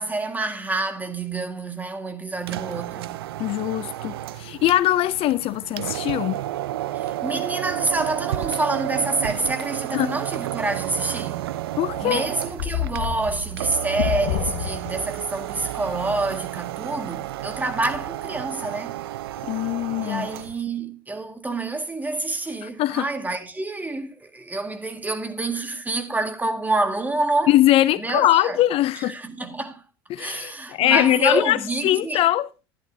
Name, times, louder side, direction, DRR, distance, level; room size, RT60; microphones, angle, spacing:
voice 1, 0.0-3.2 6.9-11.6 12.0-19.0 20.0-27.6 28.0-28.6 29.0-29.8 30.2-32.2, right 2 dB, 15° right, 1.9 m, -27 dB
sound 1, 2.4-20.6, right 14 dB, 75° right, 0.5 m, -31 dB
voice 2, 3.4-6.4 9.9-10.1 11.8-12.2 19.5-20.3 22.8-23.1 27.5-29.2 30.1-31.6 31.8-32.5, left 14 dB, 50° left, 0.5 m, -21 dB
sound 2, 11.8-15.3, left 12 dB, 75° left, 0.9 m, -29 dB
12.5 x 10.0 x 2.7 m
hypercardioid pair, 75°, 13 cm